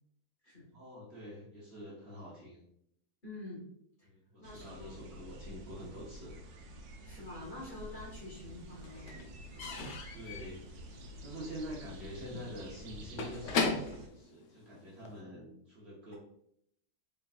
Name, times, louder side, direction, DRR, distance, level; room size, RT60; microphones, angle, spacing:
voice 1, 0.7-2.6 4.0-6.4 10.1-10.6 11.2-16.1, equal, 50° right, -6 dB, 1.0 m, -46 dB
voice 2, 3.2-3.6 4.0-4.1 4.4-5.0 7.0-9.1, left 2 dB, 35° left, -6 dB, 1.6 m, -46 dB
sound 1, 4.4-14.1, right 1 dB, 80° right, 1.1 m, -49 dB
Slam / Squeak / Wood, 7.3-8.2 8.4-15.2, left 3 dB, 65° left, 0.7 m, -38 dB
3.9 x 3.4 x 2.4 m, 0.73 s
omnidirectional pair, 1.6 m